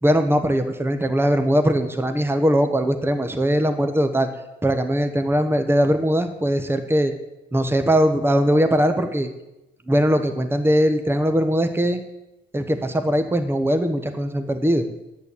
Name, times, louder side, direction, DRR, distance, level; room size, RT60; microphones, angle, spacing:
voice 1, 0.0-4.3 4.6-7.1 7.5-9.3 9.9-12.0 12.5-14.9, equal, 10° right, 8 dB, 1.3 m, -20 dB
10.0 x 8.7 x 8.4 m, 0.94 s
cardioid pair, 90°, 20 cm